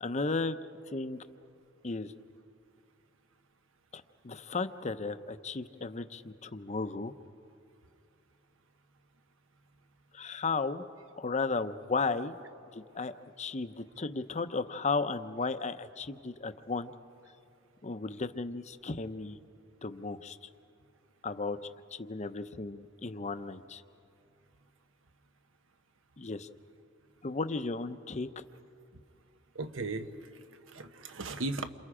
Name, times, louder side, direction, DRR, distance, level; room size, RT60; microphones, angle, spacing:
voice 1, 0.0-0.6 0.9-1.2 1.8-2.1 3.9-7.1 10.1-10.8 11.2-12.3 12.7-16.9 17.8-19.4 19.8-20.4 21.2-21.6 21.9-23.8 26.2-26.5 27.2-28.3, left 3 dB, 35° left, 10 dB, 0.7 m, -34 dB
voice 2, 29.5-31.7, right 2 dB, 80° right, 8 dB, 1.1 m, -37 dB
28.5 x 27.5 x 5.0 m, 2.5 s
head